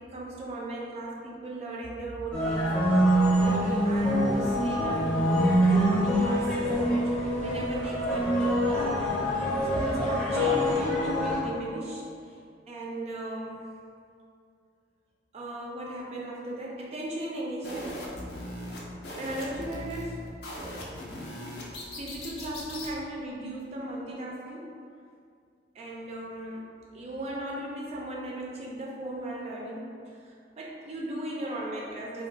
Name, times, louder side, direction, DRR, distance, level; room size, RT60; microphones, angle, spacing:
voice 1, 0.0-6.7 7.0-8.5 9.6-12.4 12.7-13.7 15.3-18.1 19.2-20.3 20.6-20.8 21.9-24.8 25.7-26.7 26.9-32.3, right 1 dB, 35° right, -3 dB, 0.3 m, -37 dB
sound 1, 2.3-11.4, equal, 5° left, 0.7 m, -25 dB
sound 2, 17.6-22.9, left 1 dB, 60° left, 0.5 m, -39 dB
2.2 x 2.2 x 3.7 m, 2.3 s
head